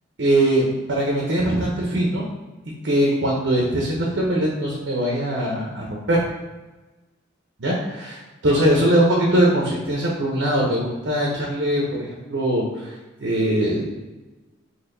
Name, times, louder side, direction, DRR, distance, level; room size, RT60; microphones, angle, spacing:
voice 1, 0.2-2.3 2.8-6.2 7.6-13.8, right 1 dB, 65° right, -3 dB, 0.7 m, -21 dB
4.6 x 2.8 x 2.6 m, 1.1 s
head